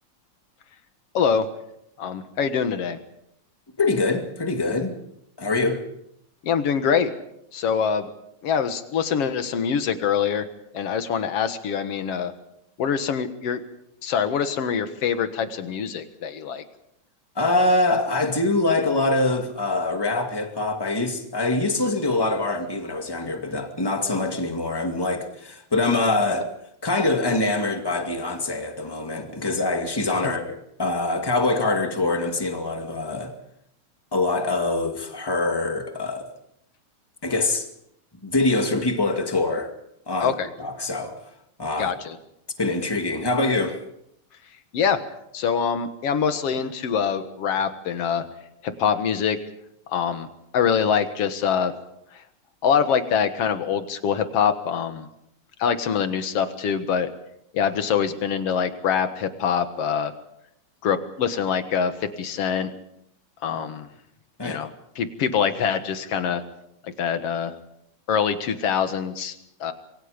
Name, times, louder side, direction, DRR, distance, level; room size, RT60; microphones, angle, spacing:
voice 1, 1.1-1.5 2.0-3.0 6.4-7.1 7.5-8.1 8.4-10.5 10.7-12.3 12.8-13.6 14.0-16.6 30.2-30.3 40.2-40.5 41.8-42.2 44.7-45.0 45.3-48.2 48.6-49.4 49.9-50.3 50.5-51.7 52.1-52.2 52.6-55.1 55.6-57.1 57.5-60.1 60.8-62.7 63.4-63.9 64.4-64.7 65.0-66.4 66.8-67.5 68.1-69.7, left 7 dB, 55° left, 2.3 m, -24 dB
voice 2, 3.8-4.9 5.4-5.8 17.4-26.5 26.8-33.3 34.1-36.3 37.2-37.7 38.2-39.7 40.1-40.3 40.6-41.2 41.6-41.9 42.6-43.8 64.4-64.6, left 2 dB, 10° left, 1.8 m, -24 dB
27.0 x 22.5 x 5.2 m
omnidirectional pair, 3.4 m